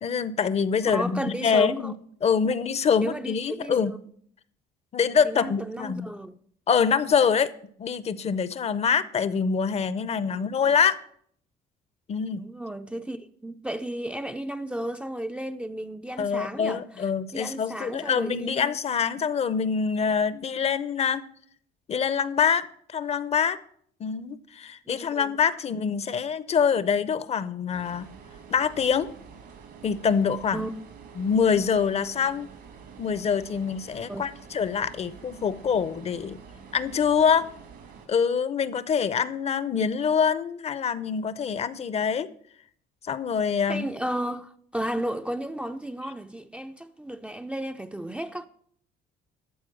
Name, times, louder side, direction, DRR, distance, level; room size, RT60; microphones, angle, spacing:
voice 1, 0.0-2.0 2.2-4.0 4.9-6.1 6.7-7.5 7.8-11.0 12.1-12.4 16.2-21.2 21.9-23.6 24.0-28.1 28.5-29.1 29.8-30.6 31.2-32.5 33.0-36.4 36.7-37.5 38.1-42.3 43.0-43.9, left 6 dB, 40° left, 0.6 m, -25 dB
voice 2, 0.9-2.0 3.0-4.0 5.0-6.4 12.3-16.8 17.3-18.8 24.9-25.4 30.5-30.7 34.1-34.2 43.7-48.5, right 1 dB, 5° right, 0.4 m, -33 dB
sound 1, 27.7-38.1, right 6 dB, 75° right, 2.6 m, -47 dB
12.5 x 4.6 x 7.5 m
cardioid pair, 110°, 17 cm